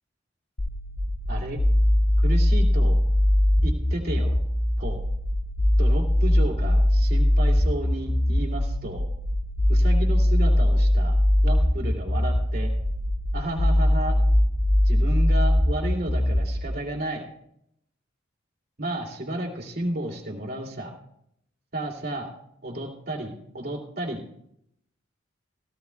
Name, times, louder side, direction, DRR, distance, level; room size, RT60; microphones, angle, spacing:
sound 1, 0.6-16.6, left 1 dB, 60° left, 2.3 m, -21 dB
voice 1, 1.3-1.6 2.2-3.0 3.6-4.3 4.8-5.0 5.8-9.1 9.7-11.2 11.4-12.7 13.3-14.2 14.8-17.2 18.8-20.9 21.7-22.3 22.6-24.4, right 1 dB, 50° right, -1 dB, 2.6 m, -32 dB
17.5 x 14.5 x 2.3 m, 0.74 s
head